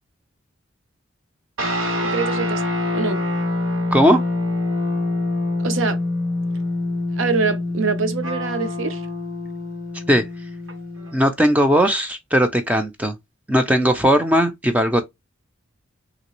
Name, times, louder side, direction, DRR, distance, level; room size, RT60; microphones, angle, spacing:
sound 1, 1.6-11.3, left 2 dB, 90° right, 1.8 m, -25 dB
voice 1, 2.1-2.6 2.9-3.2 5.6-6.0 7.2-9.0, right 4 dB, 70° right, 0.6 m, -24 dB
voice 2, 3.9-4.2 10.1-10.2 11.1-13.1 13.5-15.0, equal, 5° right, 0.4 m, -18 dB
3.1 x 2.9 x 3.0 m
head